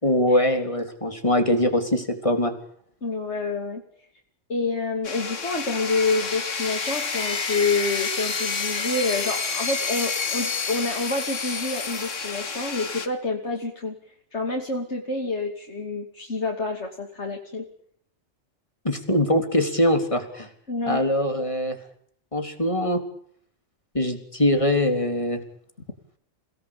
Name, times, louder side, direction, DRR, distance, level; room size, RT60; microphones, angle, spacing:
voice 1, 0.0-2.5 18.8-20.5 20.9-21.8 22.3-23.0 23.9-25.4, left 1 dB, 25° left, 6 dB, 3.6 m, -22 dB
voice 2, 3.0-3.8 4.5-13.9 14.3-17.7 20.7-21.0, left 3 dB, 65° left, 1 dB, 3.2 m, -28 dB
sound 1, 5.0-13.1, left 5 dB, 85° left, 2.2 m, -29 dB
28.5 x 19.0 x 8.7 m, 0.65 s
omnidirectional pair, 1.3 m